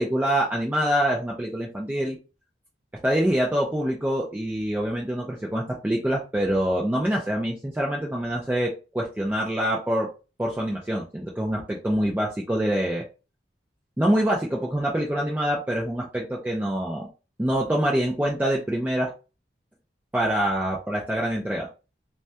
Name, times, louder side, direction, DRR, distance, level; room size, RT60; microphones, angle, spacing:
voice 1, 0.0-2.2 3.0-10.1 10.4-13.1 14.0-17.1 17.4-19.1 20.1-21.7, right 1 dB, 10° right, -2 dB, 0.3 m, -25 dB
2.2 x 2.2 x 2.7 m, 0.32 s
head